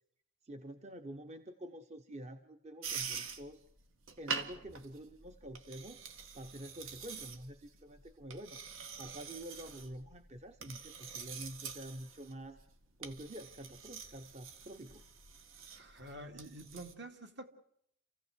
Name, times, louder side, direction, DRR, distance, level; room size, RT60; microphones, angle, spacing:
voice 1, 0.4-3.6 4.2-6.0 6.3-8.6 9.0-12.6 13.0-15.0, right 1 dB, 30° right, 8 dB, 1.0 m, -48 dB
sound 1, 2.8-16.9, right 6 dB, 75° right, 1.9 m, -46 dB
voice 2, 15.7-17.5, right 1 dB, 55° right, 6 dB, 2.5 m, -48 dB
28.0 x 16.0 x 8.1 m, 0.74 s
head